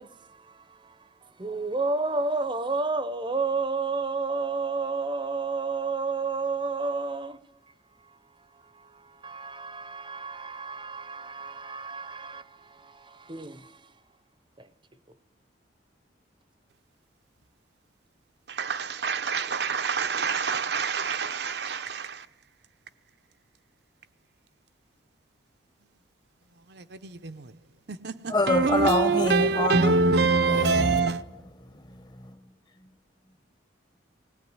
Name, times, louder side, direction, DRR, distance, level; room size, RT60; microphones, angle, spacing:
voice 1, 0.0-7.4 8.0-13.9 14.6-14.7, right 4 dB, 25° right, 0.8 m, -31 dB
voice 2, 18.5-22.2 26.8-27.4 27.9-31.2, right 4 dB, 60° right, 0.8 m, -25 dB
voice 3, 28.3-31.0 31.9-32.4, left 2 dB, 25° left, 1.0 m, -27 dB
19.5 x 18.0 x 9.6 m
head